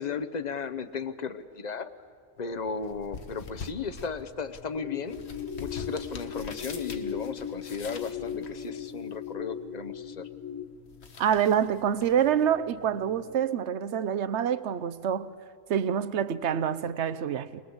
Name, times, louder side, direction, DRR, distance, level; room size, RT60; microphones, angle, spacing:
voice 1, 0.0-1.9 2.4-5.2 5.6-10.3, left 5 dB, 40° left, 0.8 m, -35 dB
sound 1, 2.4-13.4, left 5 dB, 55° left, 1.4 m, -46 dB
sound 2, 4.8-10.6, left 8 dB, 15° left, 1.4 m, -37 dB
voice 2, 11.2-15.3 15.7-17.6, right 8 dB, 65° right, 1.0 m, -26 dB
23.0 x 20.5 x 8.0 m
omnidirectional pair, 1.3 m